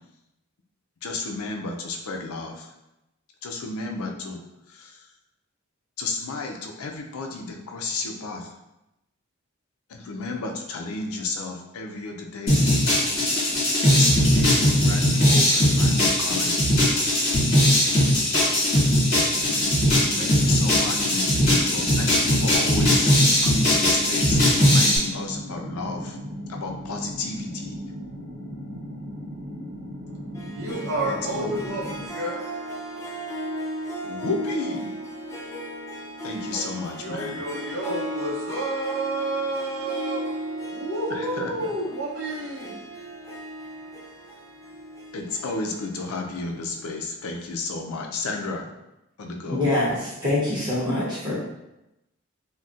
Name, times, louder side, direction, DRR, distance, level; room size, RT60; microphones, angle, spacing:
voice 1, 1.0-2.7 3.4-4.4 4.7-5.1 6.0-8.5 9.9-12.7 13.8-16.7 20.2-26.2 26.5-27.8 31.3-31.6 34.0-34.9 36.2-37.4 41.1-41.5 45.1-48.7 49.2-49.6, left 3 dB, 80° left, 3 dB, 0.5 m, -32 dB
sound 1, 12.5-25.0, left 1 dB, 50° left, 1.3 m, -20 dB
sound 2, 19.3-32.1, equal, 50° right, 0.9 m, -37 dB
Harp, 30.3-47.1, right 1 dB, 15° left, 0.4 m, -36 dB
voice 2, 30.5-32.4 37.0-40.2 40.7-42.8, right 2 dB, 85° right, -3 dB, 0.7 m, -30 dB
voice 3, 49.5-51.3, left 1 dB, 20° right, -8 dB, 0.9 m, -24 dB
3.9 x 2.1 x 2.4 m, 0.91 s
head